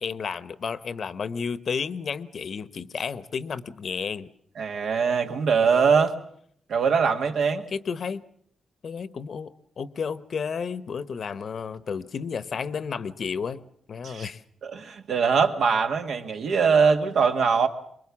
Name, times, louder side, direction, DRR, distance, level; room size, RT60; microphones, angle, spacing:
voice 1, 0.0-4.3 7.7-8.2 8.8-9.5 9.8-14.4, left 6 dB, 55° left, 0.9 m, -32 dB
voice 2, 4.6-6.2 6.7-7.7 14.0-14.3 14.6-17.7, right 5 dB, 75° right, 1.8 m, -22 dB
24.0 x 21.5 x 7.3 m
cardioid pair, 115°, 0 cm